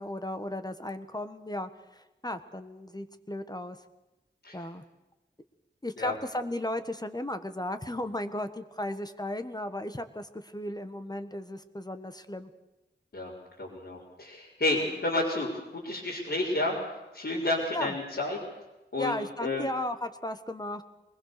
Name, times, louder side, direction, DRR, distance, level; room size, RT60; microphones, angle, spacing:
voice 1, 0.0-3.8 4.5-4.8 5.8-12.5 17.7-18.0 19.0-20.8, left 1 dB, 20° left, 9 dB, 1.5 m, -35 dB
voice 2, 13.6-16.8 17.1-18.4 18.9-19.7, left 2 dB, 65° left, -6 dB, 5.2 m, -30 dB
24.0 x 20.5 x 6.9 m, 1.0 s
wide cardioid pair, 65°, 19 cm